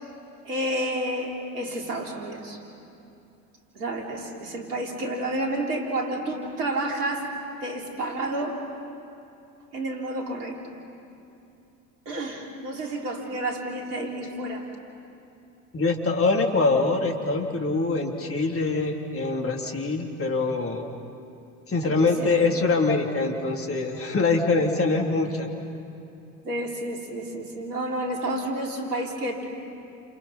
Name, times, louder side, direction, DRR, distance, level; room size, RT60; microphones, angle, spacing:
voice 1, 0.4-2.6 3.8-7.3 7.6-8.6 9.7-10.6 12.1-14.7 21.8-22.4 26.4-29.4, right 1 dB, 75° right, 1 dB, 3.7 m, -30 dB
voice 2, 15.7-20.8 21.7-25.5, left 3 dB, 30° left, 1 dB, 3.6 m, -24 dB
29.5 x 28.5 x 5.8 m, 2.7 s
figure-of-eight pair, 65°, 47 cm